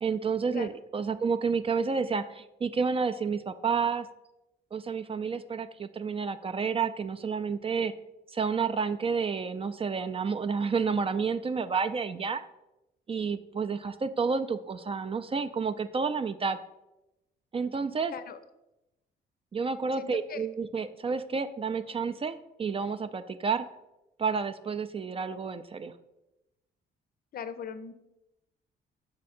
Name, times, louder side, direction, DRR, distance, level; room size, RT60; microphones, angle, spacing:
voice 1, 0.0-4.1 4.7-7.9 8.3-12.4 13.1-16.6 17.5-18.1 19.5-23.7 24.2-25.9, right 5 dB, 30° right, 10 dB, 0.4 m, -30 dB
voice 2, 18.1-18.4 20.0-20.5 27.3-27.9, left 7 dB, 50° left, 12 dB, 0.6 m, -39 dB
6.3 x 4.8 x 4.3 m, 0.94 s
cardioid pair, 90°, 20 cm